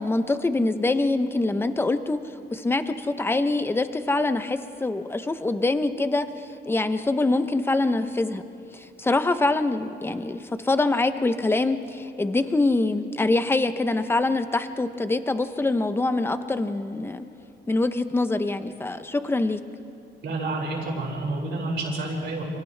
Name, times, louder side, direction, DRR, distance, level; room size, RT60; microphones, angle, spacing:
voice 1, 0.0-2.2 2.5-6.3 6.7-8.4 8.7-17.2 17.7-19.6, left 2 dB, 10° left, 9 dB, 0.7 m, -24 dB
voice 2, 20.2-22.4, right 2 dB, 70° right, -2 dB, 5.5 m, -29 dB
29.0 x 28.5 x 3.3 m, 2.7 s
wide cardioid pair, 175°, 19 cm